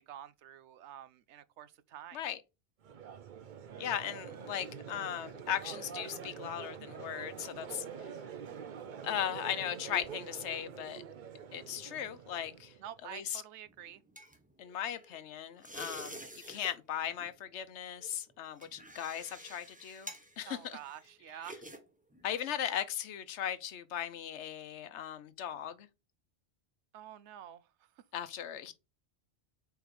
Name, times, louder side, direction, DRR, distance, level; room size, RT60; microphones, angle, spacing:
voice 1, 0.0-2.2 7.7-8.0 12.8-14.0 20.5-21.6 26.9-28.0, right 10 dB, 85° right, 0.9 m, -49 dB
Crowd, 2.8-13.0, right 7 dB, 50° right, 0.7 m, -46 dB
voice 2, 3.8-7.9 9.0-11.0 11.5-12.7 13.1-13.4 14.6-20.1 20.4-20.8 22.2-25.9 28.1-28.7, left 10 dB, 85° left, 1.0 m, -38 dB
sound 1, 13.7-15.2 15.6-16.7 17.0-17.3 18.0-21.8 22.1-22.3, right 1 dB, 10° right, 0.9 m, -48 dB
4.6 x 4.6 x 5.1 m
omnidirectional pair, 1.1 m